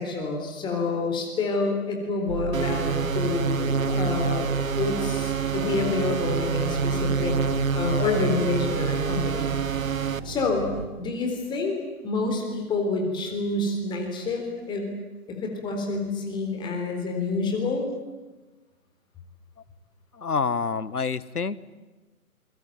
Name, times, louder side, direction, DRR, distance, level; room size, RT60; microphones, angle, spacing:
voice 1, 0.0-4.5 4.8-7.4 7.7-9.6 10.2-10.7 11.0-14.9 15.3-17.9, left 3 dB, 10° left, 3 dB, 3.6 m, -28 dB
sound 1, 2.3-10.9, right 8 dB, 45° right, 4.0 m, -35 dB
sound 2, 2.5-10.2, right 5 dB, 65° right, 1.3 m, -27 dB
voice 2, 20.2-21.6, left 5 dB, 80° left, 17 dB, 1.5 m, -27 dB
28.0 x 23.0 x 9.2 m, 1.2 s
figure-of-eight pair, 145°, 44 cm